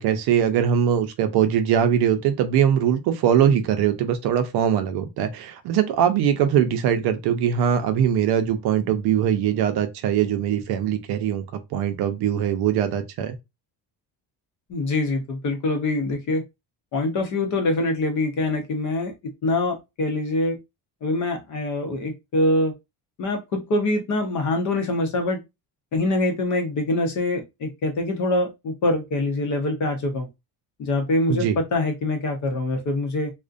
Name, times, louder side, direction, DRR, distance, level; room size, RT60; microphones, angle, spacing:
voice 1, 0.0-11.4 11.7-13.4 31.3-31.6, right 9 dB, 70° right, 0.5 m, -21 dB
voice 2, 14.7-16.4 16.9-19.1 19.4-20.6 21.0-22.7 23.2-25.4 25.9-30.3 30.8-33.3, left 2 dB, 45° left, 0.6 m, -24 dB
2.4 x 2.1 x 2.4 m
cardioid pair, 175°, 41 cm